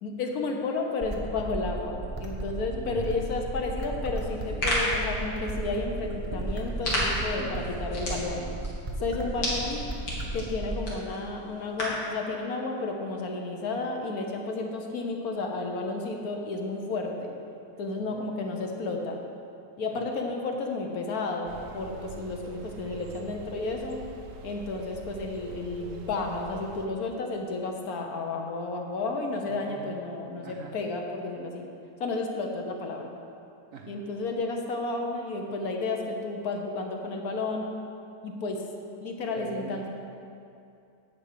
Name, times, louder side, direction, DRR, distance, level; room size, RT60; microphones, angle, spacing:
voice 1, 0.0-8.5 9.0-9.8 10.3-17.3 17.8-19.2 19.8-24.0 24.4-31.6 32.0-33.1 33.9-37.7 38.2-38.6 39.0-39.9, left 3 dB, 65° left, 2 dB, 1.3 m, -32 dB
sound 1, 1.0-11.0, right 2 dB, 25° right, 0.8 m, -35 dB
voice 2, 2.7-3.3 7.4-7.7 8.0-8.7 9.4-9.6 9.9-10.2 18.1-18.4 19.9-20.1 29.5-30.8 33.7-34.0 39.4-39.9, right 5 dB, 65° right, 2 dB, 0.9 m, -44 dB
sound 2, 4.3-12.1, left 1 dB, 80° left, 2.5 m, -33 dB
sound 3, 21.5-26.9, right 5 dB, 80° right, 1.3 m, -44 dB
9.5 x 4.7 x 7.3 m, 2.6 s
omnidirectional pair, 1.8 m